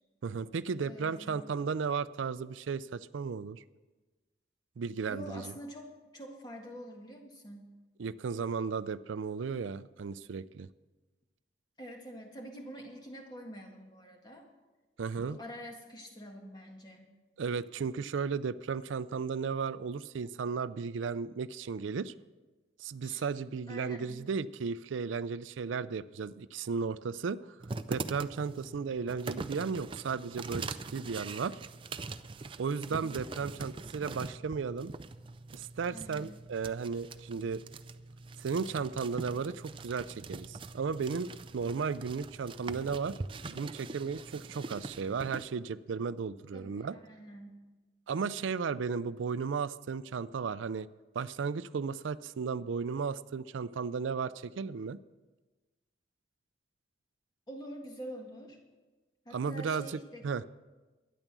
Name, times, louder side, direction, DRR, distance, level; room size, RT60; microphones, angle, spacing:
voice 1, 0.2-3.6 4.8-5.4 8.0-10.7 15.0-15.4 17.4-22.1 22.8-27.5 27.9-31.5 32.6-34.9 35.5-37.6 38.4-43.2 43.5-47.0 48.1-50.9 51.2-55.0 59.3-60.0 60.2-60.4, right 5 dB, 90° right, 15 dB, 0.4 m, -35 dB
voice 2, 0.8-1.6 5.1-7.7 11.8-14.5 15.3-17.1 23.0-23.2 23.7-24.3 30.9-31.2 32.9-33.2 35.9-36.4 46.5-47.5 57.5-58.6 59.2-60.2, equal, 20° left, 2 dB, 1.7 m, -46 dB
sound 1, 27.6-45.4, right 3 dB, 25° right, 0.4 m, -43 dB
12.5 x 10.5 x 6.1 m, 1.2 s
head